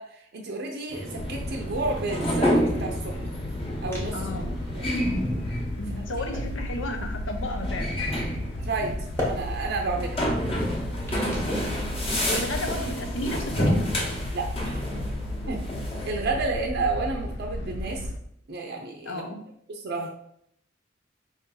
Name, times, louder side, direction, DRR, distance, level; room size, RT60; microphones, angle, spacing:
voice 1, 0.0-3.3 3.8-4.3 4.7-4.8 8.6-10.2 14.3-14.8 15.5-15.6 16.0-18.1 18.5-19.2 19.7-20.1, right 3 dB, 60° right, 1 dB, 0.5 m, -31 dB
sound 1, 0.9-16.1, equal, 30° left, 0.9 m, -30 dB
sound 2, 1.2-18.2, left 1 dB, 60° left, 0.4 m, -34 dB
sound 3, 1.6-14.2, left 1 dB, 15° left, 1.1 m, -41 dB
voice 2, 4.1-4.5 5.8-8.0 11.1-11.5 12.3-13.9 19.0-19.4, left 1 dB, 85° left, 4 dB, 0.8 m, -33 dB
4.8 x 2.7 x 3.8 m, 0.73 s
head